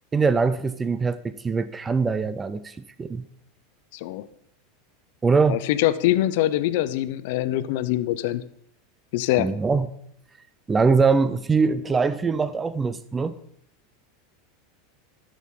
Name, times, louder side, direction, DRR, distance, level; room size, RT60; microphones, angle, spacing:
voice 1, 0.1-3.3 5.2-5.6 9.4-9.9 10.7-13.4, right 4 dB, 15° right, 0.5 m, -22 dB
voice 2, 3.9-4.3 5.5-8.4 9.1-9.5, left 14 dB, 65° left, 0.6 m, -23 dB
12.5 x 6.3 x 3.7 m
supercardioid pair, 125°, 0 cm